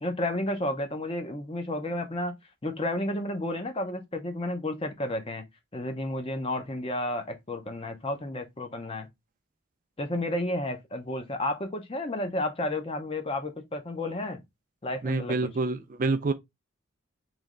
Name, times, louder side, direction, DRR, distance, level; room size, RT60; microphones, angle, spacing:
voice 1, 0.0-2.3 2.6-5.4 5.7-9.1 10.0-14.4 14.8-15.4, left 1 dB, 25° left, 0.7 m, -31 dB
voice 2, 15.0-16.3, right 3 dB, 40° right, 0.4 m, -27 dB
3.3 x 3.1 x 3.7 m
head